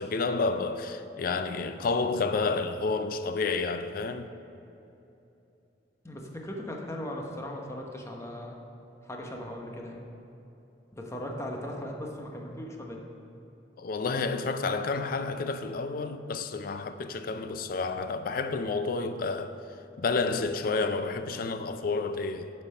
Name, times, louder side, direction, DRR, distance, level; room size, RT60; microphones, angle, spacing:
voice 1, 0.0-4.3 13.8-19.6 20.0-22.5, left 4 dB, 55° left, 0.4 m, -30 dB
voice 2, 6.0-8.6 9.0-10.1 10.9-13.0, left 1 dB, 15° left, 0.9 m, -38 dB
8.1 x 5.6 x 5.4 m
head